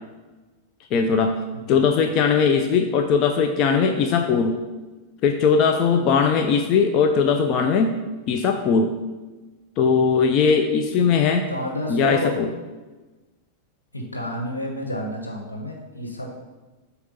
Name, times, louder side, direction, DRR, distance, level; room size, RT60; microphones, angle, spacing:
voice 1, 0.9-1.4 1.7-4.6 5.2-8.0 8.3-8.9 9.8-11.5 11.9-12.5, left 5 dB, 40° left, 5 dB, 0.4 m, -19 dB
voice 2, 11.5-12.4 13.9-16.3, equal, 80° left, 0 dB, 1.1 m, -30 dB
7.8 x 2.9 x 5.2 m, 1.2 s
figure-of-eight pair, 90°, 0 cm